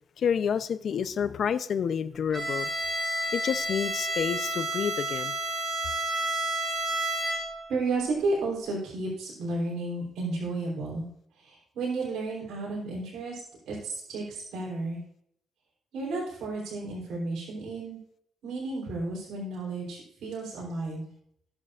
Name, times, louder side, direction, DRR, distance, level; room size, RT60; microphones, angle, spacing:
voice 1, 0.2-2.7 3.3-5.4, left 7 dB, 60° left, 12 dB, 0.7 m, -29 dB
Bowed string instrument, 2.3-7.7, right 1 dB, 30° right, 3.6 m, -30 dB
voice 2, 7.7-11.0 11.4-13.4 13.7-15.0 15.9-18.0 18.4-21.0, right 3 dB, 75° right, -4 dB, 3.6 m, -32 dB
19.5 x 6.7 x 2.5 m, 0.71 s
cardioid pair, 90°, 0 cm